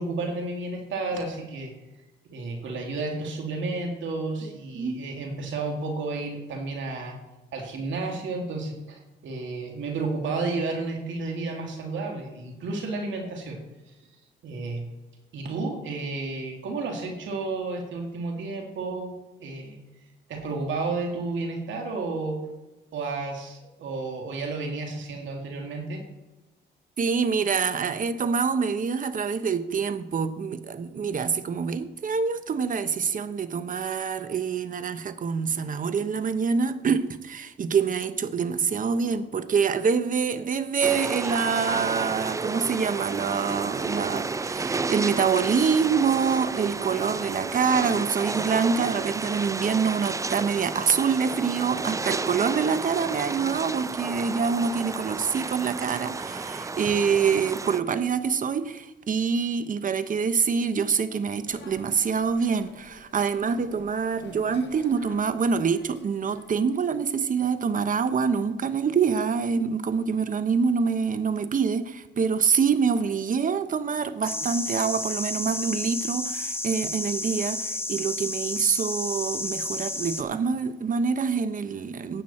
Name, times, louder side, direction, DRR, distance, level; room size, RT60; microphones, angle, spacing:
voice 1, 0.0-1.7 2.3-7.2 7.5-13.6 13.9-14.0 14.4-14.8 15.3-19.1 19.4-19.8 20.3-22.5 22.9-26.0, right 3 dB, 70° right, 2.7 m, -32 dB
voice 2, 27.0-82.2, right 6 dB, 40° right, 1.0 m, -26 dB
sound 1, 40.8-57.8, right 3 dB, 15° right, 0.4 m, -31 dB
sound 2, 61.5-67.2, left 5 dB, 60° left, 1.7 m, -50 dB
sound 3, 74.2-80.2, left 2 dB, 10° left, 1.1 m, -31 dB
16.0 x 9.1 x 4.4 m
cardioid pair, 90°, 20 cm